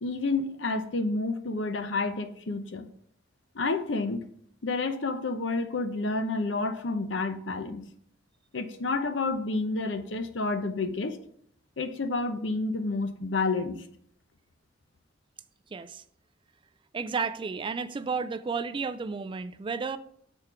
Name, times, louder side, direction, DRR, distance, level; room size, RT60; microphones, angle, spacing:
voice 1, 0.0-2.9 3.5-4.2 4.6-7.8 8.5-11.2 11.8-13.8, left 3 dB, 70° left, 0.8 m, -29 dB
voice 2, 15.7-16.0 16.9-20.0, right 5 dB, 25° right, 0.3 m, -32 dB
6.8 x 4.4 x 5.9 m
head